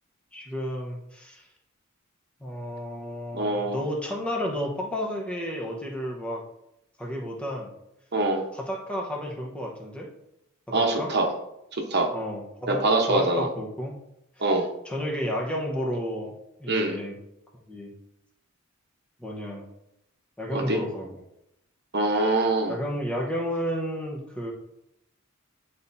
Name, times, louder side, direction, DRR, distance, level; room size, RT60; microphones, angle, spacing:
voice 1, 0.3-1.4 2.4-6.4 7.0-7.7 8.5-10.1 10.7-11.1 12.1-12.8 13.1-14.0 14.4-14.6 14.8-16.3 16.6-17.2 17.7-17.9 19.2-19.6 20.4-21.2 22.7-24.5, equal, 5° left, -1 dB, 1.0 m, -32 dB
voice 2, 3.3-3.8 8.1-8.4 10.7-11.3 11.7-12.1 12.7-13.5 14.4-14.7 16.7-17.0 20.5-20.8 21.9-22.8, right 2 dB, 50° right, 2 dB, 1.0 m, -24 dB
10.5 x 4.2 x 2.7 m, 0.83 s
head